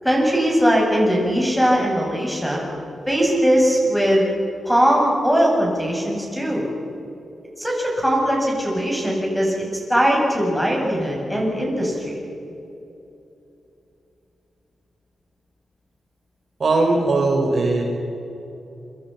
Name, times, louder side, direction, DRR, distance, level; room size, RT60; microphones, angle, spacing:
voice 1, 0.0-2.6 3.1-4.3 4.6-6.7 7.6-12.2, equal, ahead, -2 dB, 7.7 m, -20 dB
voice 2, 16.6-17.8, right 3 dB, 50° right, 1 dB, 4.6 m, -19 dB
27.5 x 25.5 x 5.8 m, 2.8 s
wide cardioid pair, 130°, 0 cm